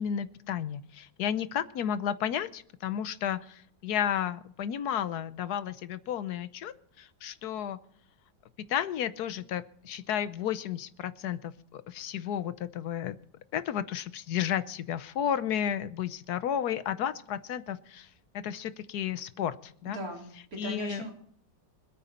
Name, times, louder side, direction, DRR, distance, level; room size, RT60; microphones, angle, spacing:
voice 1, 0.0-7.8 8.7-13.2 13.5-18.1 18.3-20.0 20.6-21.0, left 9 dB, 65° left, 14 dB, 1.2 m, -32 dB
voice 2, 19.8-21.1, right 1 dB, 55° right, 0 dB, 4.2 m, -39 dB
26.0 x 9.1 x 4.3 m, 0.64 s
omnidirectional pair, 1.9 m